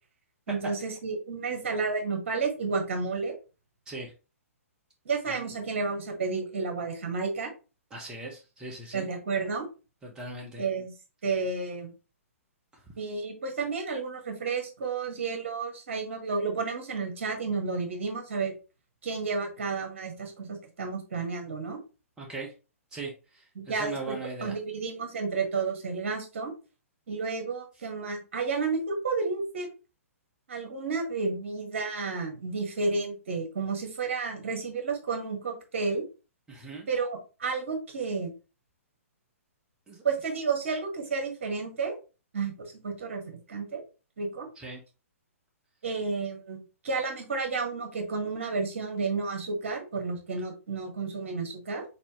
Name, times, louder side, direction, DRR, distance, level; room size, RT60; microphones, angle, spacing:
voice 1, 0.5-3.4 5.0-7.5 8.9-9.7 10.6-10.9 11.2-11.9 13.0-18.5 19.0-21.8 23.5-24.2 24.4-26.5 27.1-29.7 30.5-36.0 36.9-38.3 40.0-42.0 42.3-42.5 42.8-43.8 44.2-44.5 45.8-46.6 46.8-51.8, right 4 dB, 55° right, 2 dB, 1.6 m, -31 dB
voice 2, 7.9-9.1 10.0-10.6 22.2-22.5 22.9-24.5 36.5-36.9 39.9-40.0 44.6-44.8, right 3 dB, 10° right, -1 dB, 0.9 m, -39 dB
4.1 x 4.1 x 3.0 m, 0.32 s
figure-of-eight pair, 120°, 8 cm